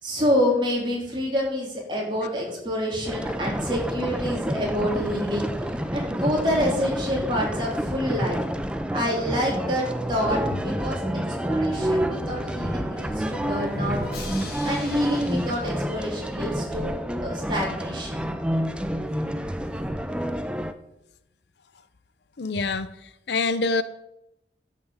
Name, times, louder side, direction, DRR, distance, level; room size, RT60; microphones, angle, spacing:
voice 1, 0.0-8.4 8.9-11.1 11.4-14.0 14.6-18.2, equal, 25° right, 3.5 m, -27 dB
sound 1, 3.1-20.7, equal, 5° right, 0.5 m, -29 dB
Drum, 11.7-16.6, equal, 55° left, 2.4 m, -39 dB
voice 2, 22.4-23.8, left 3 dB, 70° left, 0.6 m, -26 dB
11.5 x 5.9 x 7.2 m
head